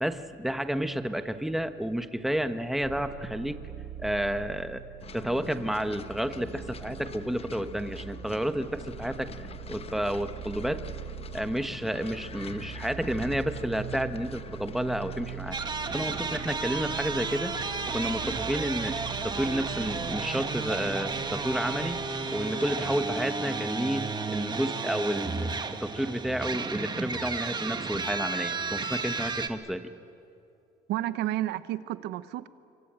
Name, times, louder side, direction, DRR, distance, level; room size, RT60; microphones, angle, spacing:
voice 1, 0.0-3.6 4.0-4.8 5.1-9.3 9.7-10.8 11.3-15.6 15.9-17.5 17.9-22.0 22.3-25.5 25.8-29.8, equal, ahead, 9 dB, 1.2 m, -31 dB
sound 1, 2.8-22.1, right 9 dB, 50° right, 1.1 m, -42 dB
sound 2, 5.0-23.4, left 6 dB, 35° left, 1.0 m, -46 dB
sound 3, 15.5-29.5, right 4 dB, 25° right, 1.6 m, -33 dB
voice 2, 30.9-32.5, right 14 dB, 85° right, 14 dB, 1.0 m, -31 dB
25.5 x 24.5 x 8.9 m, 2.6 s
cardioid pair, 110°, 17 cm